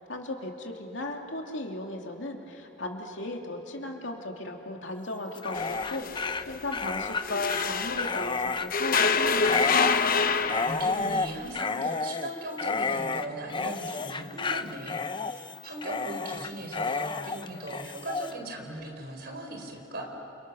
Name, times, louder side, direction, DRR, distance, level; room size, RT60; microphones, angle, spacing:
voice 1, 0.1-9.7, left 2 dB, 70° left, 2 dB, 2.7 m, -36 dB
Dog, 5.3-18.3, left 4 dB, 25° left, 0.6 m, -31 dB
sound 1, 5.5-8.3 8.7-11.2, left 5 dB, 50° left, 0.9 m, -27 dB
voice 2, 10.2-20.1, right 1 dB, 55° right, 2 dB, 4.6 m, -38 dB
29.0 x 28.5 x 6.4 m, 3.0 s
head